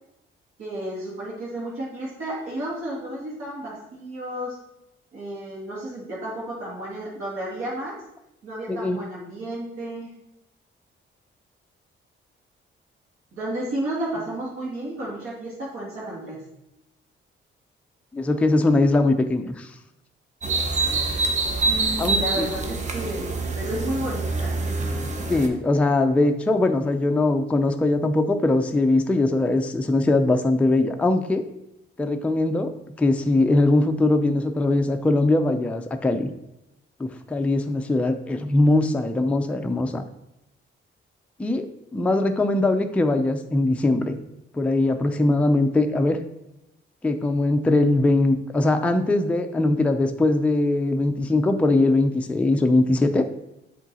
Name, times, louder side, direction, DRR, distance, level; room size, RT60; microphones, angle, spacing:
voice 1, 0.6-4.6 5.1-8.0 8.4-10.1 13.3-16.4 21.6-24.6, right 1 dB, 85° right, -6 dB, 2.3 m, -32 dB
voice 2, 8.7-9.0 18.1-19.7 22.0-22.5 25.3-31.4 32.0-36.3 37.0-40.0 41.4-41.7 41.9-44.2 44.5-46.2 47.0-53.3, left 2 dB, 5° left, 6 dB, 0.3 m, -21 dB
sound 1, 20.4-25.5, right 3 dB, 35° right, 0.7 m, -25 dB
7.4 x 3.7 x 4.0 m, 0.87 s
cardioid pair, 155°, 21 cm